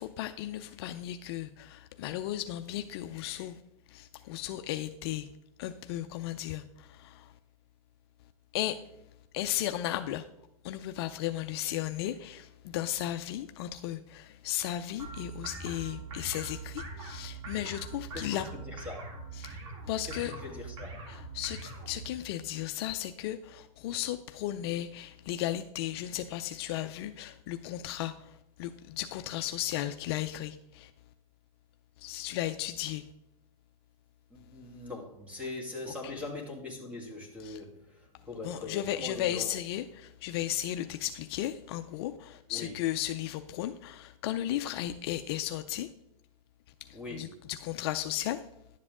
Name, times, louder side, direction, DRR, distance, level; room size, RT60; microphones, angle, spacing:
voice 1, 0.0-3.6 3.9-5.3 5.6-7.3 8.5-8.8 9.3-10.2 10.6-18.5 19.4-19.6 19.9-20.4 21.1-30.9 32.0-33.1 37.4-37.6 38.4-45.9 47.1-48.4, left 13 dB, 45° left, 8 dB, 0.4 m, -35 dB
sound 1, 15.0-22.1, right 3 dB, 60° right, 2.8 m, -42 dB
voice 2, 18.1-19.2 20.0-21.0 34.3-39.5 42.5-42.8 46.9-47.4, left 3 dB, 5° right, 0 dB, 1.9 m, -42 dB
11.0 x 7.5 x 3.7 m, 0.85 s
supercardioid pair, 150°, 18 cm